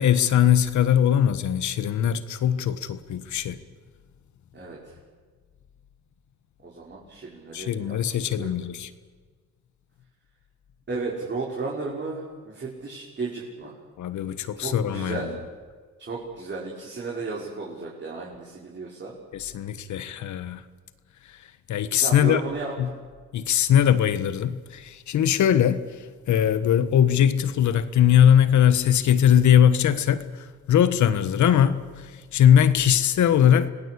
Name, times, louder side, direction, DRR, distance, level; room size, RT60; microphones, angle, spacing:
voice 1, 0.0-3.6 7.5-8.9 14.0-15.3 19.3-20.6 21.7-22.4 22.8-22.9 23.3-25.8 26.3-33.7, left 9 dB, 70° left, 1.5 m, -20 dB
voice 2, 4.5-5.0 6.6-8.5 10.9-13.7 14.6-15.3 16.0-19.1 22.0-22.7, right 3 dB, 35° right, 5.5 m, -34 dB
26.5 x 19.0 x 8.6 m
cardioid pair, 90°, 30 cm